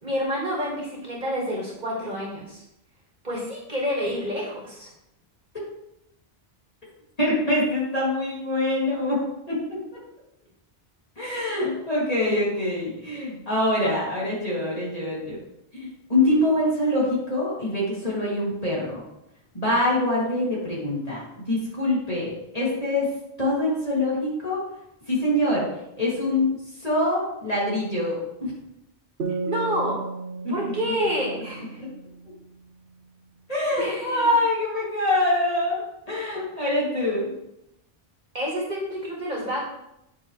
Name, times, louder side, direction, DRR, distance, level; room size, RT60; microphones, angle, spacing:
voice 1, 0.0-2.6 3.2-4.9 29.4-30.0 30.5-31.8 33.8-34.3 38.3-39.6, equal, 45° right, -4 dB, 2.3 m, -28 dB
voice 2, 7.2-9.2 9.5-9.6 11.2-15.4 15.7-19.0 19.5-21.2 21.5-23.1 23.4-24.6 25.1-25.7 26.0-26.5 26.8-28.5 30.4-30.5 30.9-31.0 31.8-31.9 33.5-37.3, left 1 dB, 35° left, -6 dB, 3.1 m, -24 dB
sound 1, 29.2-32.7, right 4 dB, 65° right, 1.1 m, -34 dB
9.4 x 6.5 x 3.4 m, 0.83 s
omnidirectional pair, 1.1 m